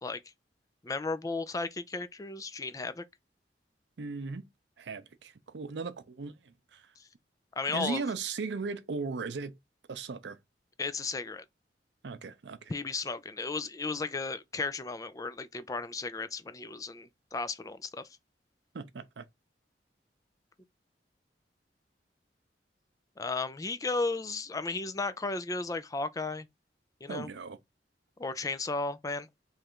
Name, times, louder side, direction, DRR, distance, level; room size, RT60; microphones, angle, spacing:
voice 1, 0.8-3.0 7.0-7.1 7.6-8.0 10.8-11.4 12.7-18.0 23.2-26.5 27.0-27.3 28.2-29.3, left 3 dB, 20° left, 0.4 m, -34 dB
voice 2, 4.0-4.4 4.8-6.9 7.7-9.6 9.9-10.4 12.0-12.7 18.7-19.3 27.1-27.6, right 4 dB, 80° right, 0.5 m, -37 dB
3.2 x 2.5 x 4.4 m
head